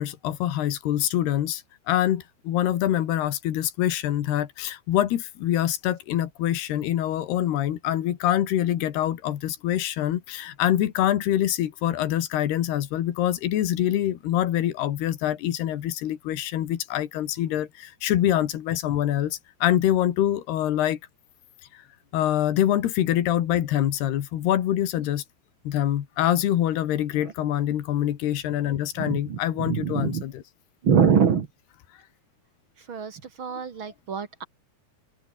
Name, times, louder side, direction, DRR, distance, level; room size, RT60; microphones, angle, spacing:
voice 1, 0.0-21.0 21.7-21.8 22.1-25.2 25.7-30.4, left 12 dB, 85° left, 3.9 m, -25 dB
voice 2, 29.0-30.2 30.8-31.5 32.9-34.4, right 7 dB, 45° right, 1.7 m, -24 dB
open air
omnidirectional pair, 4.5 m